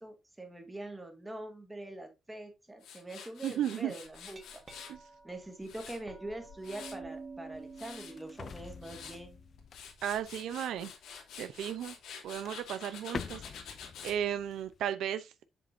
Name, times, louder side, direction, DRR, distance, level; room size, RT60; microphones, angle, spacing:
voice 1, 0.0-4.4 5.2-9.4, right 1 dB, 10° right, 1.9 m, -44 dB
Tools, 2.8-5.0 5.4-7.1 7.5-8.1 8.6-9.2 9.6-14.2, left 7 dB, 90° left, 2.8 m, -48 dB
voice 2, 3.4-3.9 4.9-5.0 10.0-10.9 11.4-11.9 12.2-13.4 14.0-15.3, right 10 dB, 80° right, 0.7 m, -34 dB
Glass, 4.1-10.2, right 4 dB, 30° right, 1.6 m, -50 dB
sound 1, 6.9-11.2 12.0-12.1 12.4-14.9, left 6 dB, 40° left, 0.4 m, -47 dB
7.7 x 7.6 x 2.7 m
cardioid pair, 160°, 0 cm